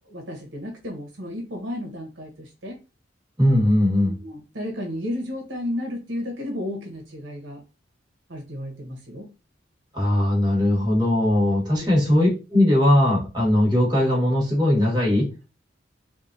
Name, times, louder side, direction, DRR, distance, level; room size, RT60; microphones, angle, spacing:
voice 1, 0.0-2.8 4.0-7.6 8.3-9.3 11.8-12.0, left 1 dB, 70° right, 1 dB, 1.0 m, -33 dB
voice 2, 3.4-4.2 9.9-15.3, left 1 dB, 25° right, -3 dB, 1.3 m, -19 dB
3.6 x 2.3 x 2.6 m, 0.30 s
head